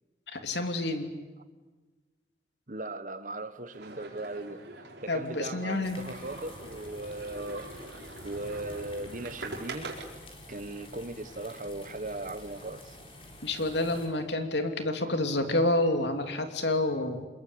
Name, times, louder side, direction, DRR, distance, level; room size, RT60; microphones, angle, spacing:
voice 1, 0.3-1.1 5.1-6.0 13.4-17.3, left 2 dB, 75° left, 2.9 m, -28 dB
voice 2, 2.7-4.6 5.0-8.0 8.2-9.9 10.5-13.0, right 2 dB, 45° right, 1.2 m, -38 dB
sound 1, 3.7-10.0, right 2 dB, 80° right, 4.8 m, -44 dB
sound 2, 5.8-14.1, left 1 dB, 30° left, 5.0 m, -49 dB
27.5 x 22.0 x 8.8 m
head